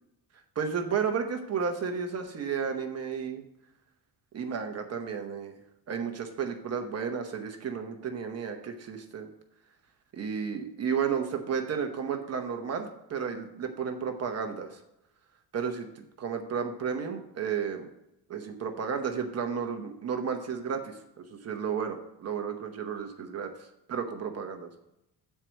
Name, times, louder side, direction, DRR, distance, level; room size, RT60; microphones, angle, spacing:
voice 1, 0.6-3.4 4.3-5.6 5.9-9.3 10.1-14.8 15.5-15.9 16.2-17.9 18.3-23.5 23.9-24.7, right 6 dB, 35° right, 4 dB, 1.0 m, -32 dB
8.5 x 4.6 x 6.2 m, 0.83 s
cardioid pair, 165°, 45 cm